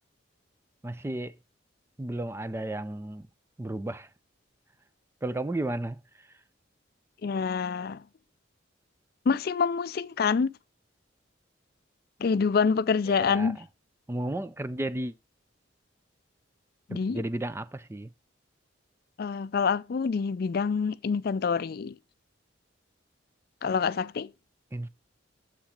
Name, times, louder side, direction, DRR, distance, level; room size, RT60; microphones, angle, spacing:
voice 1, 0.8-1.4 2.0-3.3 3.6-4.1 5.2-6.3 13.1-13.7 14.1-15.1 16.9-18.1 24.7-24.9, right 1 dB, 15° right, 0.4 m, -33 dB
voice 2, 7.2-8.0 9.3-10.5 12.2-13.6 16.9-17.2 19.2-21.9 23.6-24.3, left 5 dB, 50° left, 0.4 m, -26 dB
7.5 x 7.2 x 3.7 m
head